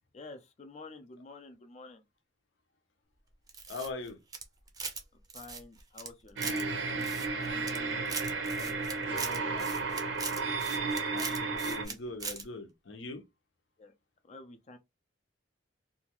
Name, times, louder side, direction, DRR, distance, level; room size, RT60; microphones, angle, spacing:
voice 1, 0.1-2.0 5.3-8.0 8.5-9.8 11.0-11.1 11.9-12.0 13.8-13.9 14.2-14.8, left 3 dB, 35° left, 0.4 m, -49 dB
sound 1, 3.5-5.0 5.3-6.6 7.0-7.8 8.1-11.9 12.2-12.4, right 4 dB, 20° right, 0.5 m, -40 dB
voice 2, 3.7-4.2 9.5-9.7 11.1-13.2, left 3 dB, 75° left, 0.7 m, -41 dB
sound 2, 6.4-11.8, right 4 dB, 80° right, 0.6 m, -33 dB
2.7 x 2.3 x 2.9 m
head